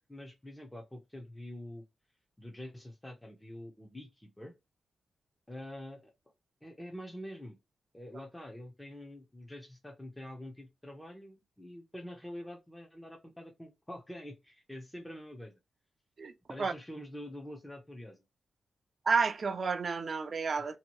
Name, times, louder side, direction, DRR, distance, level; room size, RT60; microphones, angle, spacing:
voice 1, 0.0-1.8 2.4-4.5 5.5-6.1 6.6-7.6 7.9-15.5 16.5-18.2 20.6-20.8, left 1 dB, 10° left, 0.6 m, -46 dB
voice 2, 19.1-20.8, right 5 dB, 45° right, 0.4 m, -30 dB
2.7 x 2.6 x 3.0 m
wide cardioid pair, 120°, 0 cm